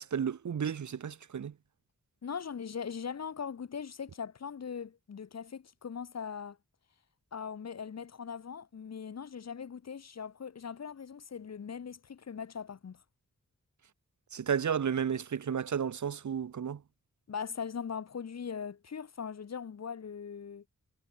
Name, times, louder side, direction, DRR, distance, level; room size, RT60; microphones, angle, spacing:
voice 1, 0.0-1.5 14.3-16.8, right 7 dB, 65° right, 1.0 m, -32 dB
voice 2, 2.2-6.6 7.3-13.0 17.3-20.6, left 6 dB, 55° left, 1.0 m, -40 dB
wide cardioid pair, 135°, 31 cm